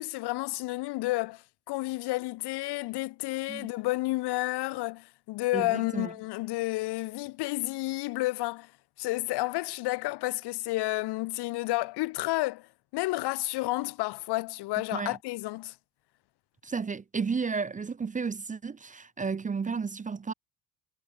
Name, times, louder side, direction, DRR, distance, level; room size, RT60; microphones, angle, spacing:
voice 1, 0.0-8.7 9.0-12.7 12.9-15.7, left 20 dB, 65° left, 0.9 m, -31 dB
voice 2, 5.5-6.1 14.9-15.2 16.6-20.3, right 5 dB, 20° right, 0.6 m, -32 dB
supercardioid pair, 85°, 42 cm